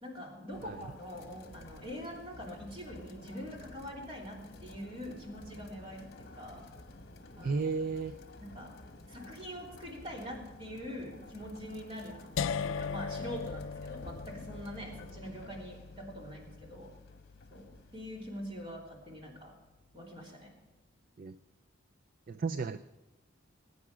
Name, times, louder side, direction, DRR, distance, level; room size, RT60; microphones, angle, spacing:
voice 1, 0.0-6.7 7.4-7.6 8.4-8.7 9.1-12.2 12.6-16.9 17.5-19.5 19.9-20.5, equal, 25° right, -2 dB, 3.1 m, -44 dB
sound 1, 0.5-18.4, left 2 dB, 50° left, 1.2 m, -52 dB
voice 2, 7.4-8.2 21.2-21.4 22.3-22.8, right 4 dB, 45° right, 11 dB, 0.4 m, -33 dB
sound 2, 12.4-18.3, left 6 dB, 70° left, 0.4 m, -39 dB
21.0 x 9.6 x 4.9 m, 1.1 s
head